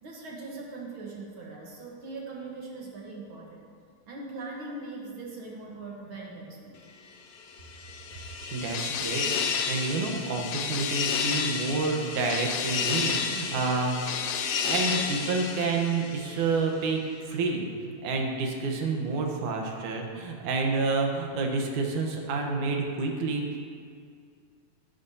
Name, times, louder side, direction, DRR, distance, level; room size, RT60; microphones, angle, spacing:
voice 1, 0.0-3.6 4.1-6.8, right 3 dB, 55° right, -2 dB, 1.6 m, -40 dB
sound 1, 7.5-16.6, left 6 dB, 75° left, 1.3 m, -31 dB
voice 2, 8.5-9.3 9.7-14.3 14.6-17.0 17.3-23.6, right 3 dB, 80° right, 2 dB, 2.6 m, -29 dB
14.0 x 10.5 x 2.8 m, 2.1 s
omnidirectional pair, 3.5 m